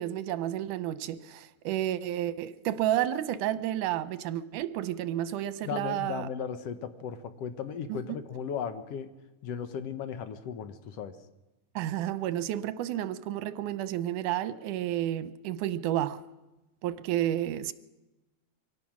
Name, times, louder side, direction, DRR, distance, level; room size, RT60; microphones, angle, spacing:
voice 1, 0.0-6.3 7.9-8.0 11.8-16.2 16.8-17.7, right 12 dB, 80° right, 14 dB, 2.3 m, -31 dB
voice 2, 5.6-9.1 9.4-11.2, left 7 dB, 65° left, 10 dB, 1.7 m, -36 dB
24.0 x 17.5 x 6.1 m, 1.0 s
omnidirectional pair, 3.7 m